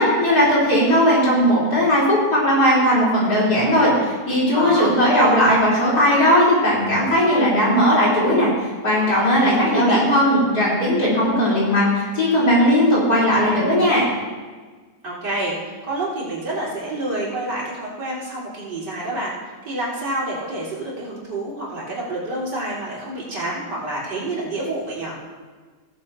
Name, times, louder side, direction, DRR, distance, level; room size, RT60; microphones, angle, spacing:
voice 1, 0.0-8.5 8.8-14.0, equal, 60° left, -6 dB, 4.7 m, -17 dB
voice 2, 4.5-5.4 9.1-10.0 15.0-19.4 19.7-25.1, right 1 dB, 90° right, -6 dB, 4.2 m, -28 dB
17.5 x 7.4 x 4.4 m, 1.4 s
omnidirectional pair, 1.8 m